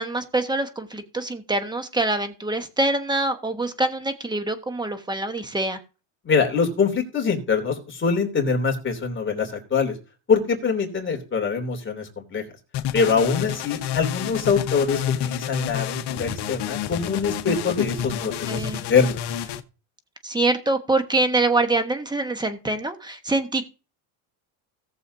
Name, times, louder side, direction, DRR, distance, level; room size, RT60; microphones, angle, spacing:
voice 1, 0.0-5.8 18.5-18.8 20.2-23.7, right 2 dB, 10° right, 8 dB, 1.2 m, -25 dB
voice 2, 6.2-9.9 10.3-12.4 12.9-19.2, left 5 dB, 25° left, 2 dB, 3.0 m, -24 dB
sound 1, 12.7-19.6, left 11 dB, 55° left, 1.2 m, -29 dB
17.5 x 7.1 x 2.7 m, 0.34 s
cardioid pair, 125°, 49 cm